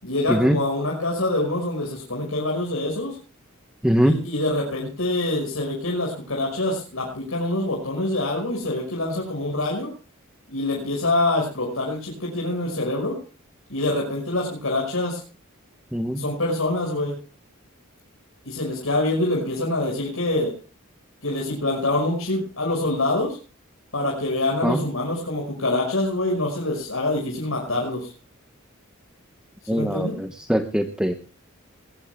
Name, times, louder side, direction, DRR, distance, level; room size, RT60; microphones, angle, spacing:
voice 1, 0.0-3.2 4.0-9.9 10.5-13.2 13.7-15.2 16.1-17.1 18.5-20.5 21.2-23.4 23.9-28.1 29.7-30.1, left 2 dB, 80° left, -2 dB, 5.6 m, -25 dB
voice 2, 3.8-4.2 15.9-16.3 24.6-24.8 29.7-31.1, equal, 5° right, 5 dB, 1.0 m, -22 dB
20.5 x 20.5 x 2.3 m, 0.37 s
head